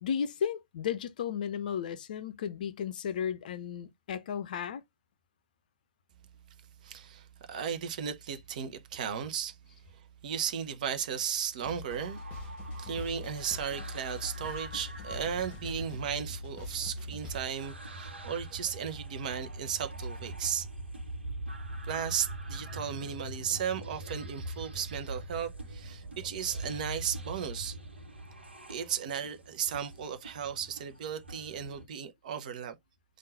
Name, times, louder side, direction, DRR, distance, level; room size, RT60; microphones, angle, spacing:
voice 1, 0.0-4.8, left 8 dB, 50° left, 0.5 m, -34 dB
voice 2, 6.8-9.6 9.9-12.5 12.8-20.7 21.8-27.8 28.7-32.8, right 8 dB, 45° right, 0.8 m, -35 dB
sound 1, 11.6-17.5, left 2 dB, 25° left, 1.0 m, -42 dB
sound 2, 11.9-31.9, right 1 dB, 75° right, 1.2 m, -43 dB
3.7 x 2.5 x 4.0 m
figure-of-eight pair, 115°, 6 cm